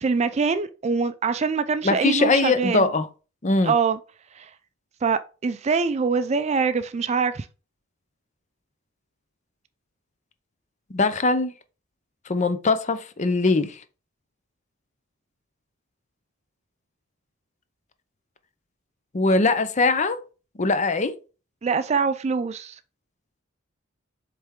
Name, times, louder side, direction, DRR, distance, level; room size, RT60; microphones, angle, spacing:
voice 1, 0.0-2.9 3.6-4.0 4.4-4.5 5.0-7.5 21.6-22.8, right 5 dB, 30° right, 0.4 m, -24 dB
voice 2, 1.8-3.1 3.4-3.7 10.9-11.5 12.3-13.8 19.1-20.2 20.6-21.2, left 3 dB, 35° left, 0.6 m, -21 dB
7.6 x 3.4 x 3.6 m
head